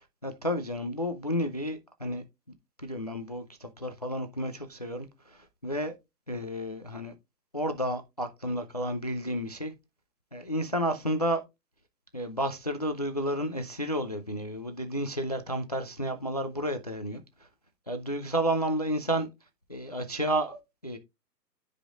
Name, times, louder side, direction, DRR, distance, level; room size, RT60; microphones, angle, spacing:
voice 1, 0.2-2.2 2.8-5.1 5.6-5.9 6.3-7.1 7.5-9.7 10.3-11.4 12.1-17.2 17.9-19.3 19.7-21.0, equal, 25° left, 0.4 m, -31 dB
13.5 x 5.1 x 2.4 m
hypercardioid pair, 145°, 49 cm